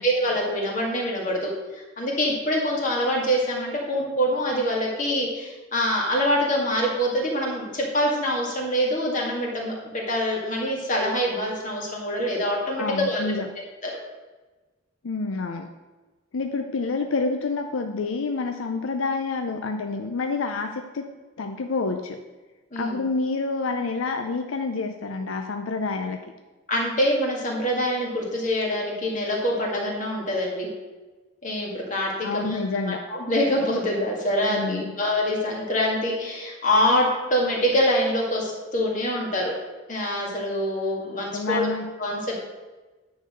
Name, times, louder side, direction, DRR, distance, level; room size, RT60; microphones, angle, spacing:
voice 1, 0.0-13.3 13.8-13.9 22.7-23.0 26.7-30.7 31.4-32.6 33.1-39.5 39.9-41.7 42.0-42.2, equal, 40° left, -2 dB, 2.0 m, -25 dB
voice 2, 12.8-13.5 15.0-15.7 16.3-21.1 21.4-22.2 22.8-26.2 32.2-33.0 34.4-34.9 41.3-41.9, left 3 dB, 85° left, 5 dB, 0.5 m, -28 dB
9.5 x 4.0 x 6.4 m, 1.2 s
head